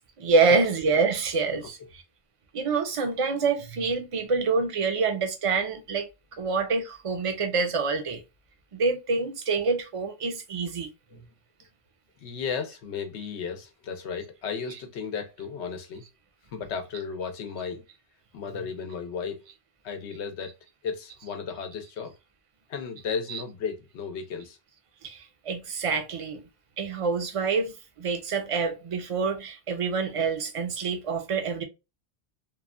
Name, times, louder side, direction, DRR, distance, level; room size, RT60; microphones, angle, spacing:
voice 1, 0.2-2.0 2.5-6.1 6.4-8.2 8.7-10.9 18.6-18.7 23.3-23.4 25.0-26.4 26.8-31.6, right 4 dB, 45° right, 0.4 m, -26 dB
voice 2, 12.2-16.0 16.5-17.8 18.3-19.4 19.8-20.5 20.8-22.1 22.7-24.6, left 6 dB, 85° left, 1.0 m, -34 dB
3.0 x 2.1 x 2.4 m
omnidirectional pair, 1.1 m